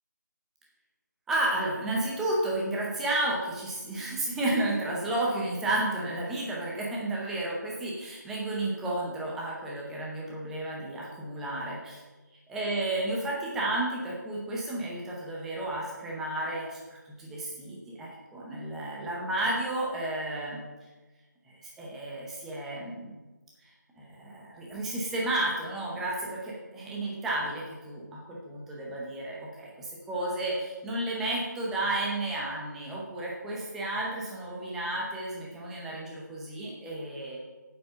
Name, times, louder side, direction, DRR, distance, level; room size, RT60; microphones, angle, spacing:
voice 1, 1.3-12.0 12.5-20.6 21.5-23.2 23.6-37.4, right 1 dB, 5° right, -4 dB, 0.7 m, -32 dB
8.1 x 7.6 x 5.6 m, 1.2 s
figure-of-eight pair, 170°, 10 cm